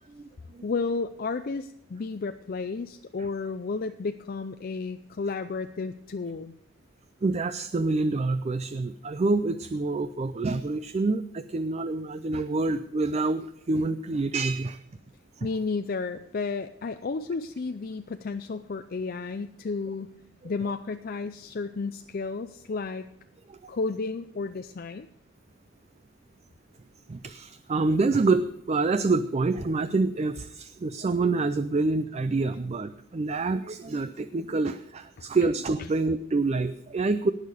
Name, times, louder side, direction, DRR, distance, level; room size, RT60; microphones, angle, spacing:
voice 1, 0.1-0.6 7.2-14.8 15.4-15.5 23.5-23.7 27.1-37.3, right 3 dB, 30° right, 12 dB, 0.4 m, -27 dB
voice 2, 0.6-6.5 15.4-20.1 20.4-23.1 23.7-25.1, left 4 dB, 45° left, 8 dB, 0.4 m, -32 dB
18.5 x 6.6 x 5.0 m, 0.77 s
head